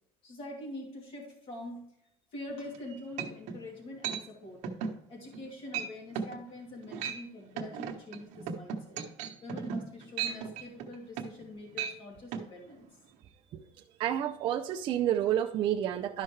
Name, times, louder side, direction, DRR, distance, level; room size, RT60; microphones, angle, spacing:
voice 1, 0.2-1.9 2.3-4.6 5.1-9.0 9.4-12.9, left 1 dB, 40° left, 0 dB, 2.7 m, -44 dB
sound 1, 2.7-2.8 3.2-3.6 4.0-4.2 4.6-5.0 5.3-5.5 5.7-5.9 6.1-6.4 6.8-7.2 7.6-11.4 11.7-12.0 12.3-12.4, right 7 dB, 55° right, 1.1 m, -36 dB
voice 2, 14.0-16.2, right 11 dB, 35° right, 1 dB, 0.5 m, -29 dB
12.0 x 5.6 x 3.2 m, 0.75 s
cardioid pair, 160°, 14 cm